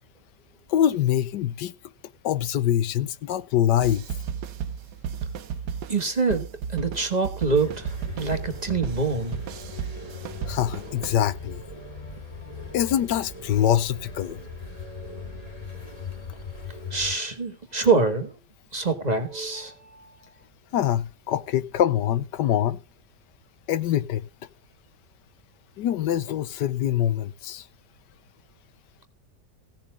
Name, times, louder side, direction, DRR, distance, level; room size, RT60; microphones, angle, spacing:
voice 1, 0.7-1.7 2.2-4.0 10.5-11.6 12.7-14.4 20.7-22.8 23.7-24.3 25.8-27.7, left 11 dB, 90° left, 1.4 m, -24 dB
sound 1, 3.8-11.1, right 7 dB, 80° right, 1.4 m, -34 dB
voice 2, 5.9-9.4 16.9-18.3 18.7-20.1, right 4 dB, 25° right, 1.7 m, -25 dB
sound 2, 7.5-17.1, left 4 dB, 20° left, 2.8 m, -39 dB
16.5 x 7.1 x 5.0 m
omnidirectional pair, 1.8 m